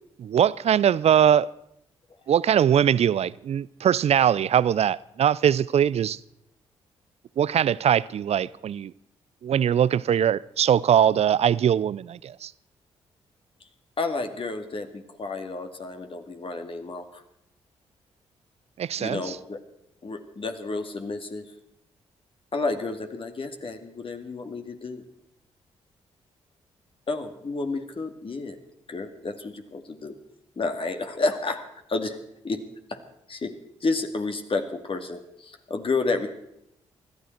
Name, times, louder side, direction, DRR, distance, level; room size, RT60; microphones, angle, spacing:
voice 1, 0.2-1.5 2.3-6.2 7.4-8.9 9.4-12.5 18.8-19.4, right 9 dB, 55° right, 0.5 m, -21 dB
voice 2, 14.0-17.2 19.0-19.6 20.0-21.5 22.5-25.0 27.1-28.6 28.9-30.2 30.6-31.6 31.9-32.2 32.4-33.0 33.3-33.5 33.8-36.3, left 3 dB, 45° left, 2.1 m, -30 dB
20.5 x 13.0 x 4.6 m
hypercardioid pair, 45°, 13 cm